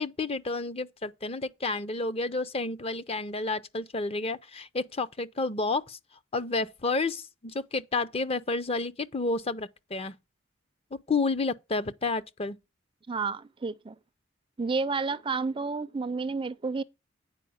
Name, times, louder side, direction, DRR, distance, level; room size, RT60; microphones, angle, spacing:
voice 1, 0.0-6.0 6.3-10.1 11.1-12.6, left 3 dB, 30° left, 0.6 m, -30 dB
voice 2, 13.1-14.0 14.6-16.8, right 4 dB, 25° right, 0.4 m, -30 dB
9.7 x 4.7 x 7.1 m
head